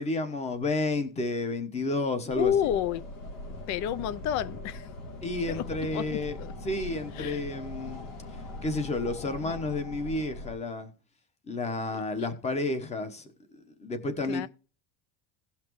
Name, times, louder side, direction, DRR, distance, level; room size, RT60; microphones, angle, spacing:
voice 1, 0.0-2.5 5.2-6.4 6.6-8.1 8.6-10.9 11.5-13.3 13.5-14.5, left 2 dB, 15° left, 1.0 m, -31 dB
sound 1, 2.3-10.6, left 1 dB, 75° left, 3.6 m, -41 dB
voice 2, 2.4-3.0 3.7-4.9 5.5-5.6 5.9-6.5 7.2-7.4 9.4-9.5 12.2-12.3 14.3-14.5, left 10 dB, 45° left, 0.5 m, -30 dB
17.0 x 5.9 x 3.0 m
cardioid pair, 175°, 43 cm